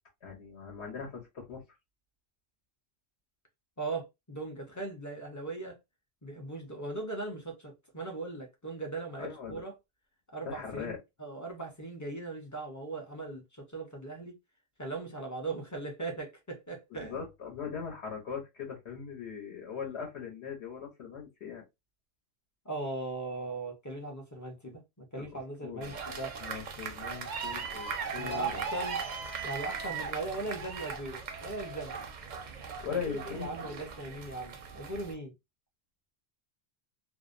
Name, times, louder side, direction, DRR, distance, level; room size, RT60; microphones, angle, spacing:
voice 1, 0.2-1.6 9.2-9.6 10.4-11.0 16.9-21.6 25.2-25.9 26.4-28.6 32.8-33.8, left 6 dB, 75° left, 1.1 m, -40 dB
voice 2, 3.8-5.8 6.2-9.7 10.3-13.4 13.7-14.3 14.8-17.2 22.6-26.4 28.1-29.0 29.4-32.0 32.9-33.0 33.2-35.3, right 3 dB, 25° left, 0.5 m, -39 dB
sound 1, 25.8-35.1, right 5 dB, 55° right, 0.5 m, -39 dB
2.5 x 2.0 x 2.4 m
omnidirectional pair, 1.1 m